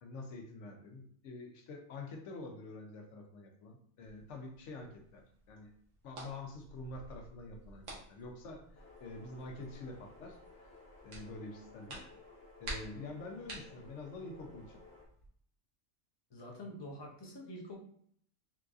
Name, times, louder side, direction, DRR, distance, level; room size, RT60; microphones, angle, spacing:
voice 1, 0.0-5.7 6.0-10.4 11.0-12.1 12.6-14.8, left 2 dB, 75° left, 3 dB, 1.0 m, -47 dB
sound 1, 4.0-15.3, right 1 dB, 85° right, 1.3 m, -51 dB
sound 2, 8.7-15.1, left 3 dB, 55° left, 1.4 m, -58 dB
voice 2, 16.3-17.8, left 1 dB, 25° left, -1 dB, 0.6 m, -46 dB
3.9 x 2.5 x 2.3 m, 0.63 s
omnidirectional pair, 1.3 m